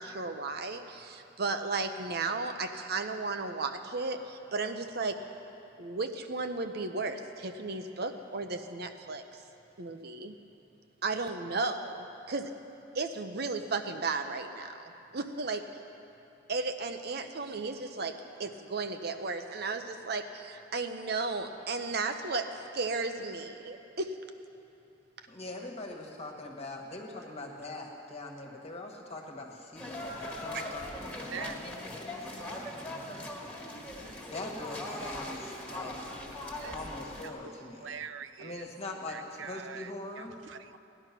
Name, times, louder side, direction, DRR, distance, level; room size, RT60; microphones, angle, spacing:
voice 1, 0.0-5.2 5.8-9.2 9.8-10.3 11.0-12.5 12.9-15.6 16.5-22.5 22.7-24.1 30.5-30.6, right 3 dB, 60° right, 7 dB, 0.8 m, -34 dB
voice 2, 25.3-33.3 34.3-35.9 36.7-38.0 38.4-40.3, left 2 dB, 35° left, 1 dB, 1.6 m, -43 dB
sound 1, 29.8-37.3, left 1 dB, 10° left, 1.8 m, -40 dB
voice 3, 37.2-40.8, right 7 dB, 85° right, 12 dB, 0.5 m, -44 dB
16.5 x 11.0 x 6.0 m, 2.8 s
head